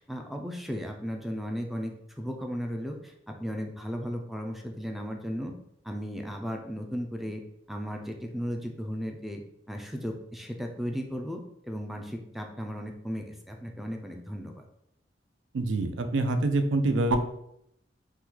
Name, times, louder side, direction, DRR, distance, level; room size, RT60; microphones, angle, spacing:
voice 1, 0.0-5.5 5.8-7.4 7.7-9.4 9.7-14.7, equal, ahead, 3 dB, 0.3 m, -35 dB
voice 2, 15.5-17.2, right 2 dB, 75° right, 7 dB, 0.4 m, -25 dB
3.0 x 2.2 x 3.6 m, 0.76 s
head